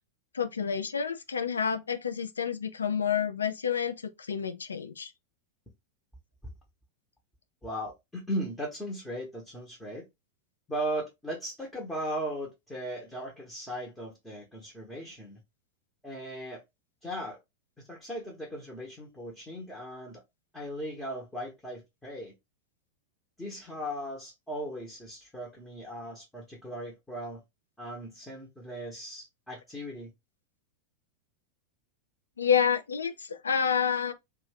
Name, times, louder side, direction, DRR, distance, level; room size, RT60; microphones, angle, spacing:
voice 1, 0.3-5.1 32.4-34.1, left 7 dB, 70° left, 0.3 m, -29 dB
voice 2, 7.6-10.0 10.7-15.4 16.0-16.6 17.0-17.4 17.8-20.2 20.5-22.3 23.4-27.4 27.8-30.1, equal, 10° left, 0.9 m, -37 dB
2.6 x 2.2 x 3.2 m
figure-of-eight pair, 90°, 0 cm